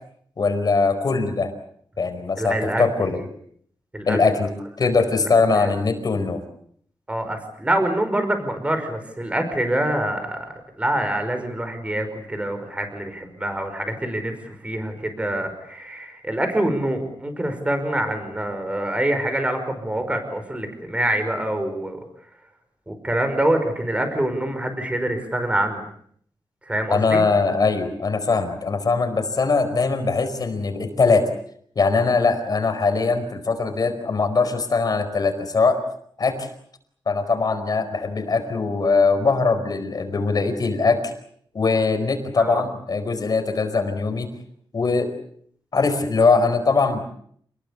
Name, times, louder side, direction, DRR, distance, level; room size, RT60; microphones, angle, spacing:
voice 1, 0.4-1.5 2.0-3.2 4.1-4.5 4.8-6.4 26.9-31.3 31.7-35.8 36.2-36.5 37.1-41.0 41.5-44.3 44.7-45.1 45.7-47.0, left 4 dB, 50° left, 7 dB, 4.8 m, -21 dB
voice 2, 2.4-2.8 3.9-4.2 4.8-4.9 5.1-5.7 7.1-10.5 10.8-22.0 22.9-25.8 26.7-27.2 42.4-42.6, right 1 dB, 15° right, 7 dB, 5.3 m, -25 dB
29.0 x 20.5 x 8.4 m, 0.65 s
wide cardioid pair, 160°, 9 cm